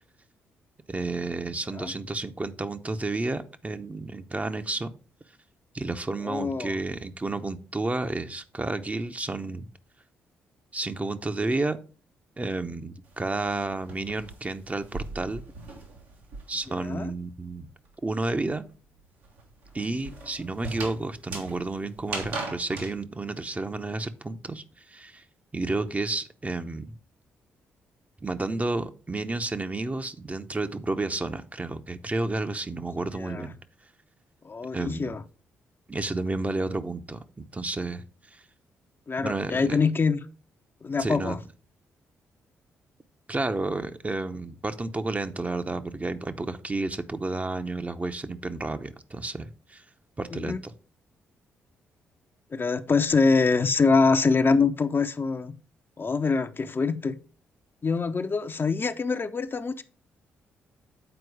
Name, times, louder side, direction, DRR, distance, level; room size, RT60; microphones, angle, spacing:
voice 1, 0.9-4.9 5.7-9.7 10.7-11.8 12.4-15.4 16.5-17.7 18.0-18.6 19.7-25.2 25.5-26.9 28.2-33.6 34.7-35.1 35.9-38.4 39.2-39.8 41.0-41.3 43.3-49.8 50.2-50.7, right 2 dB, 25° right, 0.7 m, -31 dB
voice 2, 6.2-6.7 16.7-17.1 33.1-33.5 34.4-35.2 39.1-40.2 40.8-41.4 50.3-50.6 52.5-55.6 56.0-57.2 57.8-59.8, left 4 dB, 35° left, 0.6 m, -24 dB
sound 1, 13.0-16.8 17.1-22.9, right 3 dB, 85° right, 1.8 m, -39 dB
8.0 x 4.5 x 4.8 m
hypercardioid pair, 40°, 6 cm